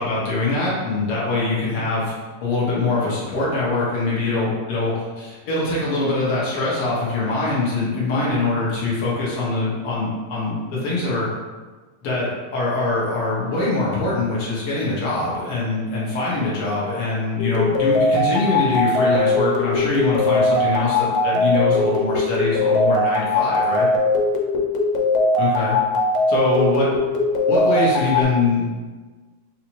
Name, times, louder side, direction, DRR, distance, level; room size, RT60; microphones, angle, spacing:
voice 1, 0.0-2.1 2.4-11.3 12.0-23.9 25.4-25.8 26.3-26.9 27.5-28.7, left 3 dB, 60° left, -6 dB, 1.6 m, -23 dB
sound 1, 17.4-28.2, left 2 dB, 85° left, 2.3 m, -20 dB
7.1 x 2.4 x 3.0 m, 1.3 s
omnidirectional pair, 3.7 m